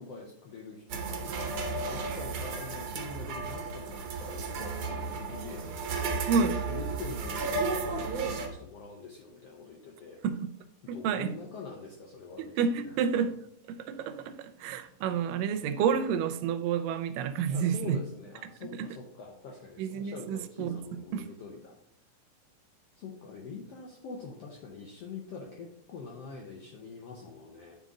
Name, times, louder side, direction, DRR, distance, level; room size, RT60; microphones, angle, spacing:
voice 1, 0.0-5.7 6.7-10.2 10.9-13.3 17.5-21.7 23.0-27.8, left 4 dB, 90° left, 1.3 m, -45 dB
sound 1, 0.9-8.5, right 4 dB, 65° right, 1.7 m, -33 dB
voice 2, 6.3-6.6 10.2-10.5 10.9-11.4 12.4-13.4 13.7-18.0 18.6-18.9 19.8-20.8 21.1-21.3, right 6 dB, 85° right, 2.2 m, -30 dB
9.6 x 4.1 x 3.6 m
omnidirectional pair, 3.9 m